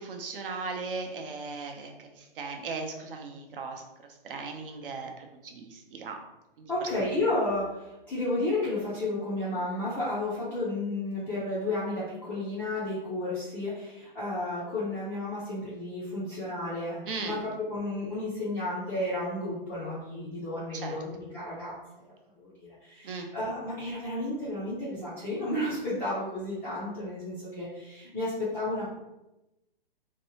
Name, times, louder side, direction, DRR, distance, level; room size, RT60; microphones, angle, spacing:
voice 1, 0.0-3.8 4.2-6.1 6.6-6.9 17.1-17.4 20.7-21.0 23.0-23.3, right 4 dB, 65° right, 3 dB, 0.6 m, -37 dB
voice 2, 6.7-21.7 22.4-28.9, left 2 dB, 10° left, -11 dB, 0.3 m, -32 dB
2.7 x 2.1 x 2.7 m, 0.94 s
hypercardioid pair, 125°, 29 cm